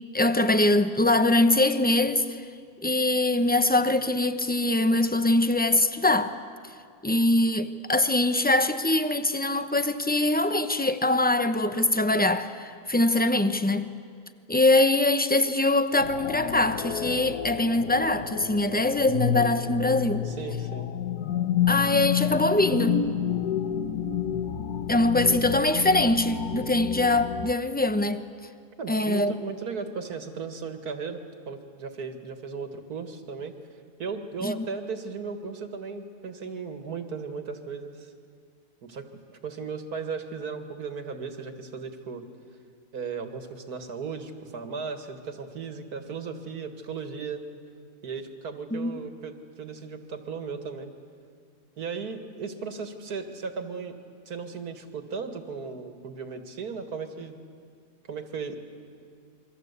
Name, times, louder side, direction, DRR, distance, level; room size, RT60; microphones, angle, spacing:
voice 1, 0.1-2.4 2.8-6.4 7.0-13.9 14.5-20.3 21.7-23.1 24.9-28.3 28.9-29.3 34.4-34.5 48.7-49.0, left 2 dB, 10° left, 0.6 m, -23 dB
sound 1, 16.0-27.5, left 9 dB, 75° left, 1.4 m, -30 dB
voice 2, 20.2-20.9 26.5-26.8 28.8-31.2 31.5-33.6 34.0-38.1 38.8-42.2 42.9-47.4 48.0-50.9 51.8-54.0 54.3-57.3 58.1-58.6, right 5 dB, 75° right, 2.3 m, -36 dB
28.5 x 23.5 x 8.3 m
omnidirectional pair, 1.7 m